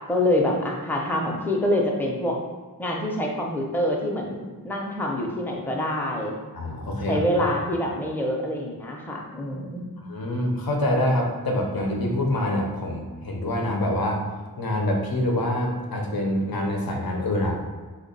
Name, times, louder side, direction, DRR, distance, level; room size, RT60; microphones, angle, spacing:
voice 1, 0.0-2.4 2.8-6.4 7.1-9.8, left 1 dB, 5° left, -1 dB, 0.5 m, -26 dB
voice 2, 6.5-7.4 10.1-14.2 14.6-17.6, left 1 dB, 80° left, 1 dB, 0.7 m, -25 dB
3.3 x 2.1 x 3.9 m, 1.4 s
wide cardioid pair, 80°, 36 cm